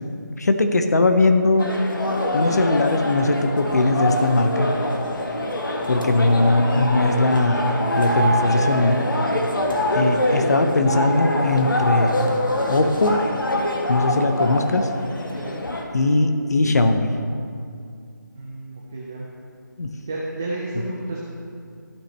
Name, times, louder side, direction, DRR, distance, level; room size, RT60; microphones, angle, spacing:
voice 1, 0.4-1.7 2.3-4.7 5.9-9.0 9.9-12.3 12.7-13.2 13.9-14.9 15.9-17.1 19.8-19.9, left 2 dB, 55° left, 7 dB, 0.7 m, -19 dB
sound 1, 1.6-15.8, left 1 dB, 80° left, 1.4 m, -24 dB
voice 2, 4.4-4.7 15.3-15.6 18.4-19.3 20.1-21.2, right 2 dB, 10° right, -5 dB, 0.3 m, -32 dB
14.5 x 5.8 x 3.2 m, 2.4 s
figure-of-eight pair, 165°, 11 cm